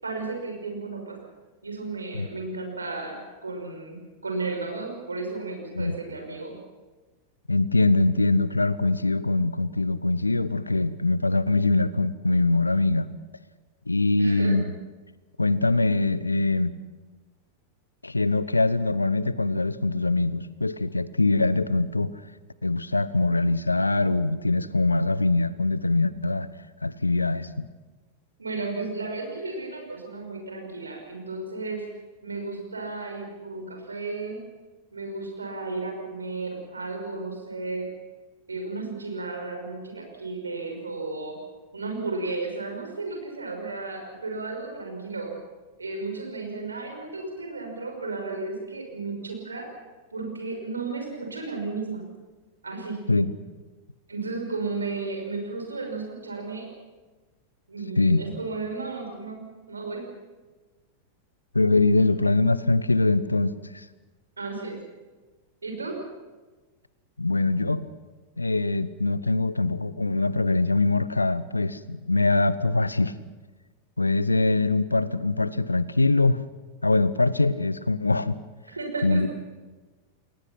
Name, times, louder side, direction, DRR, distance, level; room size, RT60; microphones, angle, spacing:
voice 1, 0.0-1.3 1.6-6.6 14.2-14.6 28.4-31.8 32.2-34.4 34.9-37.8 38.5-41.3 41.7-45.3 45.8-49.7 50.1-52.0 52.6-53.0 54.1-56.7 57.7-60.0 64.4-64.8 65.6-65.9 78.7-79.3, right 3 dB, 75° right, 2 dB, 6.0 m, -33 dB
voice 2, 7.5-13.1 13.9-14.6 15.4-16.8 18.0-22.1 22.6-26.5 26.8-27.5 53.1-53.3 58.0-58.2 61.5-63.8 67.2-67.9 68.4-73.1 74.0-76.4 76.8-78.4 79.0-79.3, left 2 dB, 80° left, 17 dB, 0.9 m, -23 dB
30.0 x 20.5 x 6.0 m, 1.3 s
figure-of-eight pair, 90°, 0 cm